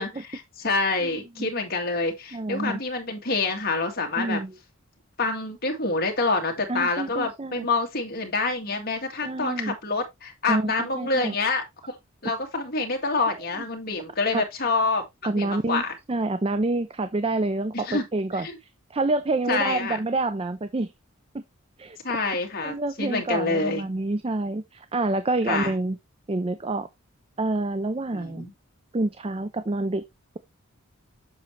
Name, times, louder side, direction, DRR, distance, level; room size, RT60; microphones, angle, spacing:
voice 1, 0.0-4.4 5.2-11.6 12.2-15.0 15.4-15.9 17.7-18.0 18.4-18.6 19.5-20.0 22.0-23.9 25.5-25.7 28.1-28.5, left 3 dB, 45° left, 2.1 m, -27 dB
voice 2, 2.3-2.8 4.2-4.5 6.7-7.7 9.2-9.7 10.5-11.3 14.3-14.4 15.2-15.8 16.1-20.9 21.3-21.4 21.8-22.0 22.6-26.0 26.3-26.9 27.4-28.5 28.9-30.0, right 2 dB, 25° right, 0.5 m, -27 dB
7.6 x 6.2 x 3.1 m
head